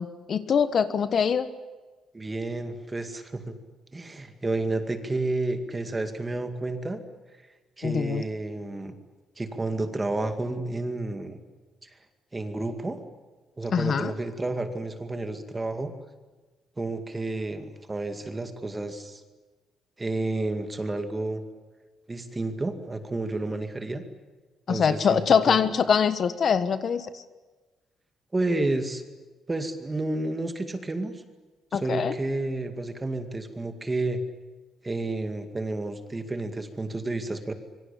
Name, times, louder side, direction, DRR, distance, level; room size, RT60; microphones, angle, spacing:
voice 1, 0.0-1.5 7.8-8.2 13.7-14.1 24.7-27.2 31.7-32.2, left 7 dB, 40° left, 12 dB, 1.3 m, -23 dB
voice 2, 2.1-3.6 3.9-7.0 7.8-9.0 9.4-11.4 11.8-11.9 12.3-13.0 13.6-15.9 16.8-19.2 20.0-21.4 22.1-24.0 24.7-25.2 25.5-25.6 28.3-29.0 29.5-31.1 31.7-34.2 34.8-37.5, right 2 dB, 15° right, 8 dB, 2.2 m, -30 dB
26.5 x 24.0 x 8.6 m, 1.3 s
cardioid pair, 175°, 0 cm